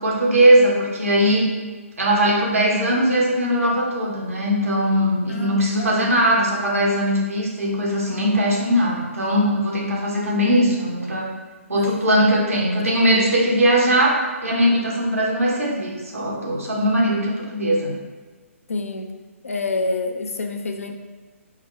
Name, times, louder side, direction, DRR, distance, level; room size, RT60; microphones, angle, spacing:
voice 1, 0.0-1.5 2.0-11.3 11.7-17.9, equal, 75° right, -3 dB, 1.1 m, -20 dB
voice 2, 5.3-6.3 11.7-11.9 18.7-19.1 19.4-20.9, left 3 dB, 75° left, 5 dB, 0.5 m, -28 dB
4.7 x 2.2 x 4.3 m, 1.4 s
figure-of-eight pair, 135°, 8 cm